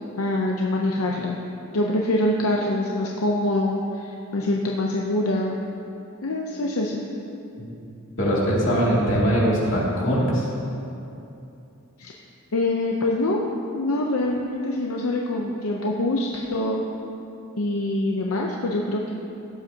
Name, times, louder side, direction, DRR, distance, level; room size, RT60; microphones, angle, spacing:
voice 1, 0.2-1.4 1.7-5.6 6.2-7.1 12.0-12.1 12.5-13.5 13.8-16.8 17.6-19.1, left 1 dB, 85° left, -1 dB, 0.7 m, -24 dB
voice 2, 8.2-10.5, equal, 60° left, -6 dB, 2.6 m, -21 dB
16.5 x 7.9 x 2.9 m, 2.8 s
head